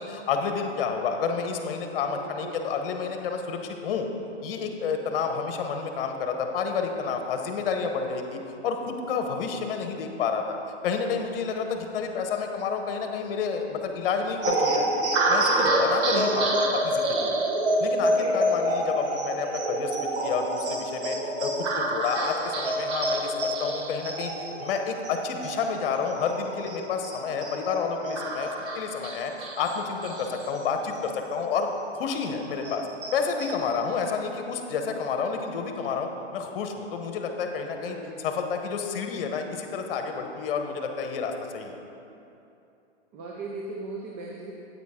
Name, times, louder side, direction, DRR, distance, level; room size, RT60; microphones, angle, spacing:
voice 1, 0.0-4.1 4.4-10.6 10.8-15.0 15.3-17.4 17.8-31.7 31.9-32.9 33.1-38.0 38.2-41.8, left 5 dB, 50° left, 5 dB, 1.1 m, -30 dB
voice 2, 2.1-2.7 37.8-38.2 43.1-44.5, right 3 dB, 25° right, -1 dB, 0.6 m, -38 dB
sound 1, 14.4-31.3 31.7-31.8 32.2-33.8, right 1 dB, 70° right, 1.4 m, -27 dB
9.3 x 8.5 x 3.7 m, 2.8 s
hypercardioid pair, 145°, 35 cm